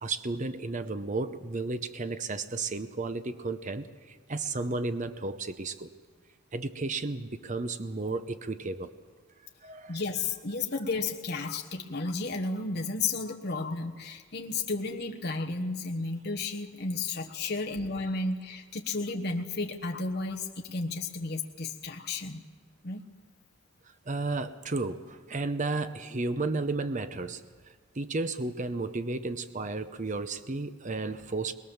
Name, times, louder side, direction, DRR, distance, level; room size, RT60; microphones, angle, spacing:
voice 1, 0.0-5.9 6.5-8.9 9.6-10.0 24.1-27.4 27.9-31.5, right 3 dB, 35° right, 10 dB, 0.8 m, -33 dB
voice 2, 9.9-22.4 22.8-23.0, left 3 dB, 50° left, 3 dB, 1.3 m, -33 dB
22.0 x 20.5 x 7.2 m, 1.5 s
head